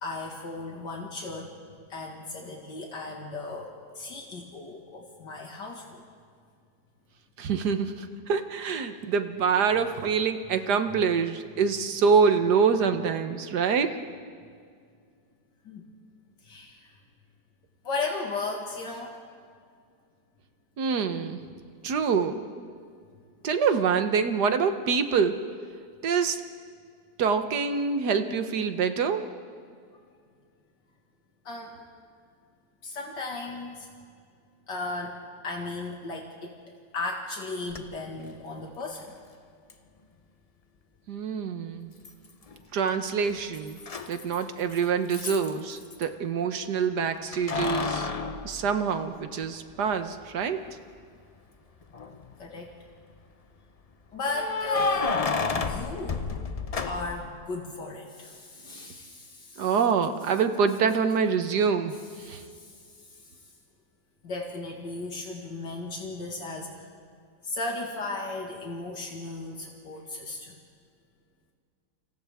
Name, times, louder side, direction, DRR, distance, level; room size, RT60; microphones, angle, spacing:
voice 1, 0.0-1.6 1.9-6.0 15.6-15.9 16.4-17.0 17.8-19.2 31.4-31.8 32.8-33.9 34.7-35.2 35.4-36.6 36.9-39.1 52.4-52.7 54.1-55.3 55.6-56.3 56.9-59.7 62.2-63.3 64.2-66.9 67.4-70.6, left 3 dB, 80° left, 0 dB, 2.6 m, -36 dB
voice 2, 7.4-13.9 20.8-21.4 21.8-22.7 23.4-25.3 26.0-26.4 27.2-29.2 41.1-41.9 42.7-43.8 44.1-48.1 48.4-50.6 59.6-61.9 62.2-62.4, right 6 dB, 70° right, 8 dB, 1.6 m, -25 dB
Keys jangling, 37.7-37.8 39.7-39.8 42.0-42.6 42.9-46.1 47.3-49.4 49.9-50.0 51.8-52.4 54.3-57.3, left 4 dB, 50° left, 0.4 m, -31 dB
29.5 x 27.0 x 3.6 m, 2.2 s
omnidirectional pair, 1.9 m